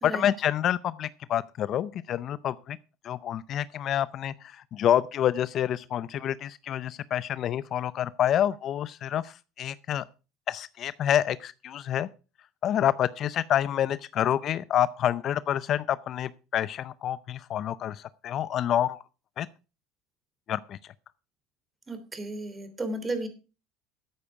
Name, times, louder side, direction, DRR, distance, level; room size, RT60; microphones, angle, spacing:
voice 1, 0.0-2.8 3.0-4.3 4.7-10.0 10.5-12.1 12.6-19.0 19.4-19.5 20.5-20.8, left 10 dB, 45° left, 18 dB, 0.5 m, -27 dB
voice 2, 21.9-23.3, right 2 dB, 20° right, 10 dB, 3.2 m, -33 dB
13.5 x 8.6 x 4.8 m, 0.32 s
supercardioid pair, 90°, 0 cm